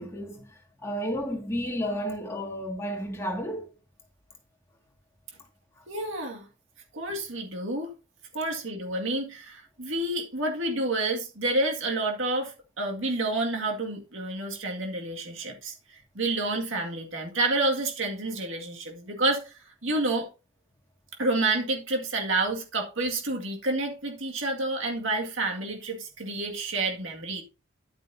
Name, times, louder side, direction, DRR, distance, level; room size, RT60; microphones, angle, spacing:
voice 1, 0.0-3.7 5.8-5.9, equal, 15° left, 2.1 m, -32 dB
voice 2, 5.9-6.5 6.9-7.9 8.3-19.5 19.8-20.3 21.2-27.4, right 2 dB, 70° right, 2.1 m, -29 dB
11.0 x 9.1 x 2.7 m
head